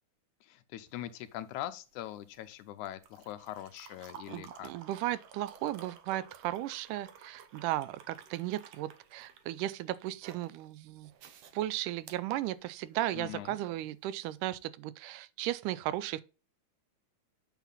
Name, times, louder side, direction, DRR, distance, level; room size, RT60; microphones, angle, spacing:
voice 1, 0.4-4.7 13.1-13.6, left 13 dB, 80° left, 2.0 m, -42 dB
sound 1, 0.9-13.2 14.4-14.6, right 8 dB, 70° right, 1.5 m, -54 dB
voice 2, 4.3-11.1 11.5-16.2, right 14 dB, 85° right, 2.1 m, -35 dB
8.2 x 4.4 x 4.0 m
omnidirectional pair, 3.6 m